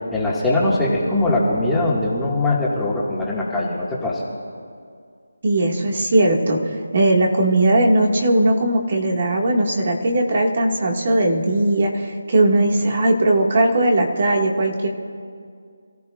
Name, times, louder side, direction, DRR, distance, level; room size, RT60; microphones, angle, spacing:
voice 1, 0.1-4.2, left 2 dB, 5° left, -7 dB, 2.1 m, -21 dB
voice 2, 5.4-14.9, right 1 dB, 45° right, 0 dB, 2.1 m, -18 dB
28.5 x 15.0 x 2.6 m, 2.2 s
figure-of-eight pair, 165°, 0 cm